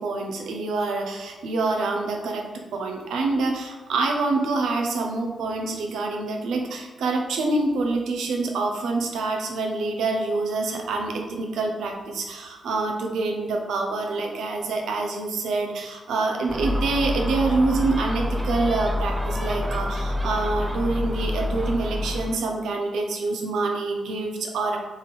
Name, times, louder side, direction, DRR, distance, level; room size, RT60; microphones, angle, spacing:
voice 1, 0.0-24.8, right 3 dB, 80° right, 2 dB, 0.7 m, -26 dB
Gull seagull, 16.5-22.4, left 1 dB, 20° right, 0.6 m, -27 dB
3.6 x 3.5 x 4.2 m, 1.2 s
supercardioid pair, 45°, 0 cm